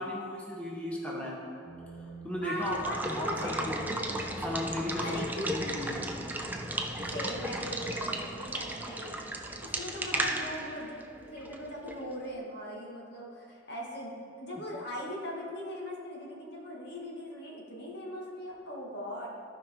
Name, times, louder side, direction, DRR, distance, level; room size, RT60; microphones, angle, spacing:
voice 1, 0.0-1.4 2.2-3.9 4.4-6.1 10.1-10.3, left 1 dB, 5° left, -3 dB, 0.9 m, -36 dB
sound 1, 1.6-8.2, equal, 45° left, 0.9 m, -49 dB
voice 2, 2.4-3.8 5.0-5.6 7.1-9.2 9.6-19.3, equal, 60° left, -3 dB, 1.8 m, -40 dB
Water / Water tap faucet / Liquid, 2.5-12.1, right 1 dB, 10° right, 0.5 m, -35 dB
14.5 x 5.0 x 3.7 m, 2.5 s
head